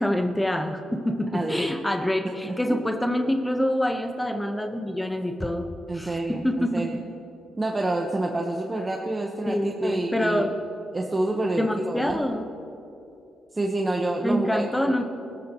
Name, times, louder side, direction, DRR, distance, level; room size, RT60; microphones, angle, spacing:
voice 1, 0.0-7.0 9.5-10.5 11.6-12.5 14.2-15.0, left 1 dB, 10° left, 5 dB, 1.1 m, -26 dB
voice 2, 2.4-2.9 5.9-7.0 7.6-10.5 10.9-12.2 13.5-15.0, right 2 dB, 20° right, 1 dB, 1.2 m, -28 dB
28.5 x 13.5 x 3.1 m, 2.8 s
cardioid pair, 90°, 0 cm